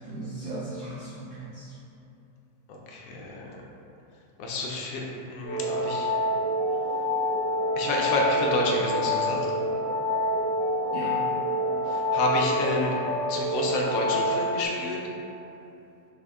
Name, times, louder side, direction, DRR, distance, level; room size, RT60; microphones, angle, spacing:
voice 1, 0.0-1.7 10.9-11.2, right 2 dB, 85° right, -7 dB, 0.6 m, -37 dB
voice 2, 2.7-3.5 4.4-5.0 5.3-6.1 7.8-9.5 11.9-13.0 13.3-15.0, left 2 dB, 75° left, -1 dB, 0.8 m, -29 dB
sound 1, 5.4-14.6, left 1 dB, 45° right, 0.7 m, -27 dB
6.1 x 2.1 x 3.4 m, 2.9 s
omnidirectional pair, 2.1 m